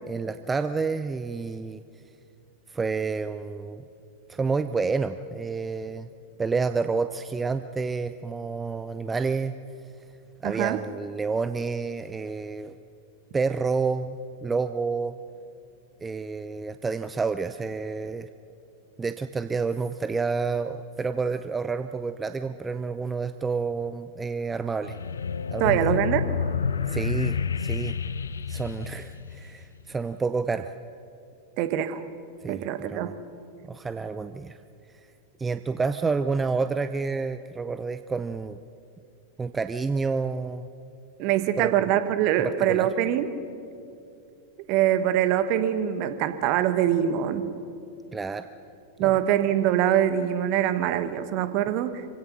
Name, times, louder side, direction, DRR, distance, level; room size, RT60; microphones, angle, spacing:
voice 1, 0.1-1.8 2.7-3.8 4.3-6.1 6.4-9.6 10.4-12.7 13.3-15.1 16.0-18.3 19.0-25.0 25.5-25.9 26.9-28.0 28.5-30.7 32.4-33.2 33.6-34.6 35.4-38.6 39.4-40.7 41.6-41.8 42.4-42.9 48.1-48.5 49.0-49.1, right 4 dB, 15° right, 11 dB, 0.5 m, -29 dB
voice 2, 10.4-10.8 25.6-26.3 31.6-32.0 32.5-33.1 41.2-43.3 44.7-47.6 49.0-52.1, right 11 dB, 45° right, 11 dB, 1.2 m, -24 dB
sound 1, 24.8-29.8, left 6 dB, 70° left, 0.5 m, -29 dB
26.0 x 16.5 x 6.1 m, 2.6 s
figure-of-eight pair, 90°, 0 cm